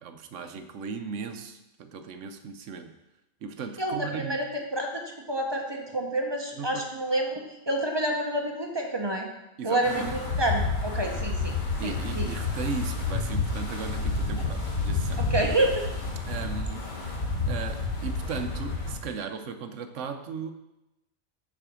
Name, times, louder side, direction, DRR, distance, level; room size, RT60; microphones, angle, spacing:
voice 1, 0.0-2.9 3.4-4.4 6.6-6.8 9.6-10.1 11.8-15.3 16.3-16.9 17.4-20.5, right 6 dB, 65° right, 8 dB, 0.9 m, -37 dB
voice 2, 3.8-5.0 5.3-9.3 9.6-11.5 11.8-12.3 15.2-15.8, right 1 dB, 25° right, 1 dB, 0.8 m, -28 dB
Wind, 9.8-19.0, left 3 dB, 35° left, 1.3 m, -30 dB
6.7 x 4.8 x 6.1 m, 0.93 s
omnidirectional pair, 1.5 m